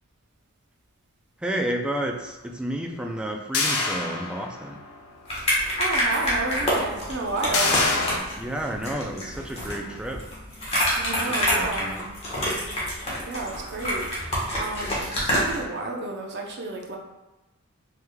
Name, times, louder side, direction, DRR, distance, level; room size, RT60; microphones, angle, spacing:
voice 1, 1.4-4.8 8.3-10.3 11.6-12.1, right 1 dB, 5° right, 1 dB, 0.3 m, -31 dB
sound 1, 3.5-4.8 5.3-5.4 7.5-8.2, left 3 dB, 70° left, 0.6 m, -25 dB
sound 2, 5.3-15.6, equal, 25° left, 1.2 m, -27 dB
voice 2, 5.8-7.8 10.9-11.9 13.3-17.0, right 3 dB, 50° right, 0 dB, 0.7 m, -31 dB
4.6 x 3.4 x 2.2 m, 1.1 s
head